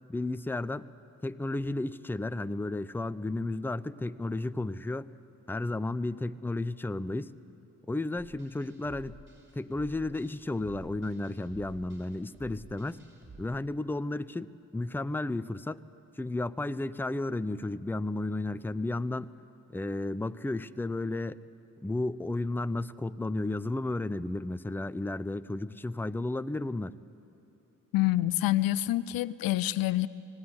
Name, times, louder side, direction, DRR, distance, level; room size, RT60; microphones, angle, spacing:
voice 1, 0.1-0.9 1.2-5.1 5.5-7.3 7.9-9.2 9.6-13.0 13.4-14.5 14.7-15.8 16.2-19.3 19.7-21.4 21.8-27.0, left 2 dB, 5° left, 14 dB, 0.6 m, -33 dB
sound 1, 8.2-13.5, right 2 dB, 35° right, 5.8 m, -52 dB
voice 2, 27.9-30.1, left 15 dB, 80° left, 16 dB, 0.5 m, -27 dB
19.5 x 16.0 x 9.6 m, 2.7 s
supercardioid pair, 55°, 34 cm